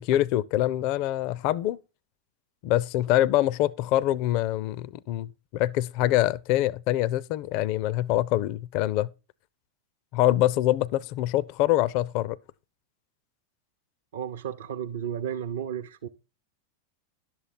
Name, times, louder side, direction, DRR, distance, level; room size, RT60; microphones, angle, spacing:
voice 1, 0.0-1.8 2.6-9.1 10.1-12.4, left 14 dB, 45° left, 0.4 m, -25 dB
voice 2, 14.1-16.1, right 9 dB, 60° right, 0.6 m, -33 dB
11.0 x 7.6 x 4.1 m
figure-of-eight pair, 90°, 0 cm